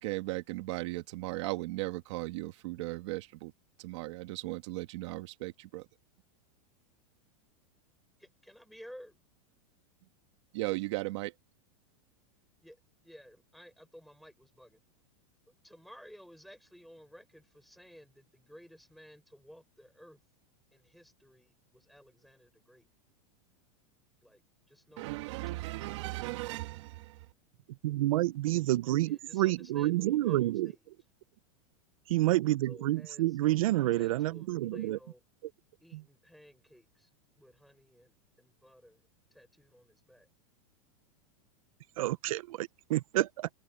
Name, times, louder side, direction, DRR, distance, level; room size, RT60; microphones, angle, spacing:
voice 1, 0.0-3.5 3.8-5.9 10.5-11.3 25.0-27.2, right 20 dB, 55° right, 1.8 m, -37 dB
voice 2, 8.2-9.1 12.6-14.8 15.6-20.2 20.7-22.9 24.2-24.4 24.7-25.5 29.0-30.8 32.6-33.4 33.8-35.2 35.8-39.0 39.3-40.3, equal, ahead, 5.1 m, -55 dB
voice 3, 27.8-30.7 32.1-35.0 42.0-43.5, right 16 dB, 75° right, 0.7 m, -29 dB
open air
supercardioid pair, 160°, 18 cm